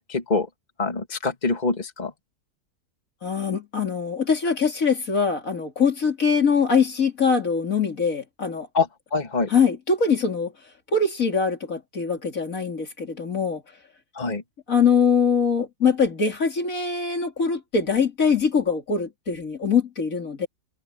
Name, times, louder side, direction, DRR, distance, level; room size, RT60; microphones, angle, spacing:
voice 1, 0.1-0.5 0.8-2.1 8.7-9.5 14.1-14.4, left 4 dB, 25° left, 2.5 m, -25 dB
voice 2, 3.2-8.7 9.5-10.5 10.9-13.6 14.7-20.5, left 5 dB, 55° left, 3.1 m, -23 dB
omnidirectional pair, 1.7 m